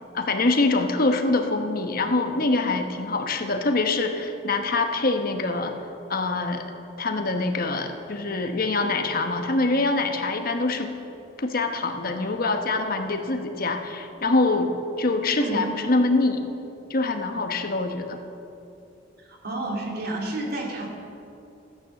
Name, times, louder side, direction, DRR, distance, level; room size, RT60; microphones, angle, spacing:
voice 1, 0.1-5.8 6.1-6.6 7.0-10.9 11.4-16.5 16.9-18.2, left 2 dB, 50° left, 5 dB, 1.0 m, -24 dB
voice 2, 19.3-20.9, right 2 dB, 55° right, 0 dB, 2.3 m, -30 dB
14.0 x 9.4 x 7.0 m, 2.7 s
head